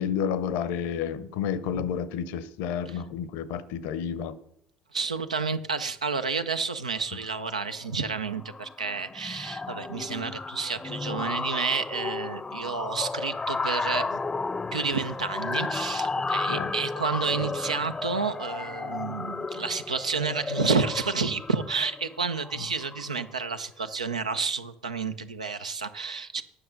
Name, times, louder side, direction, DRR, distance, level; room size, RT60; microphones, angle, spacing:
voice 1, 0.0-4.4 16.5-16.7, left 8 dB, 65° left, 0.7 m, -30 dB
voice 2, 4.9-14.2 14.7-26.4, right 5 dB, 90° right, 0.5 m, -30 dB
sound 1, 7.2-7.5 7.8-8.1 8.4-23.3, left 3 dB, 20° left, 0.3 m, -33 dB
9.7 x 6.0 x 6.4 m
figure-of-eight pair, 60°, 4 cm